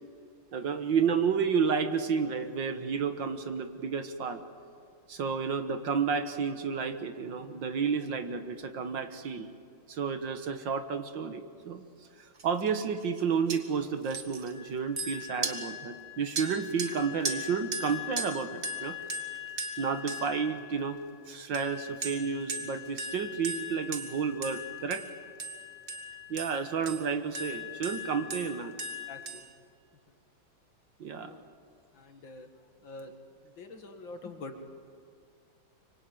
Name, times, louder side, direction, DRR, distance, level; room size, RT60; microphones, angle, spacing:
voice 1, 0.5-4.4 5.1-9.5 9.9-11.8 12.4-19.0 19.8-21.0 21.3-25.0 26.3-28.8 31.0-31.4, right 6 dB, 65° right, 9 dB, 1.9 m, -31 dB
sound 1, 12.4-12.7 13.0-13.2 13.5-13.6 14.0-21.1 21.5-29.5, equal, 35° right, 1.9 m, -38 dB
voice 2, 29.1-29.5 31.1-31.5 31.9-32.5 32.8-33.1 33.4-34.6, left 2 dB, 65° left, 6 dB, 2.6 m, -45 dB
24.5 x 24.0 x 9.2 m, 2.3 s
omnidirectional pair, 2.3 m